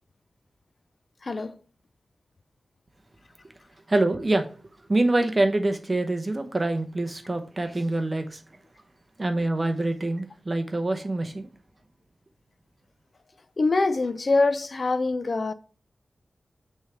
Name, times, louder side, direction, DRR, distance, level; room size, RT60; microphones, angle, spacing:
voice 1, 1.2-1.6 13.6-15.5, left 3 dB, 40° left, 0.4 m, -24 dB
voice 2, 3.9-4.5 4.9-8.4 9.2-11.5, right 2 dB, 25° right, 0.8 m, -25 dB
6.2 x 3.4 x 5.0 m
wide cardioid pair, 130°, 0 cm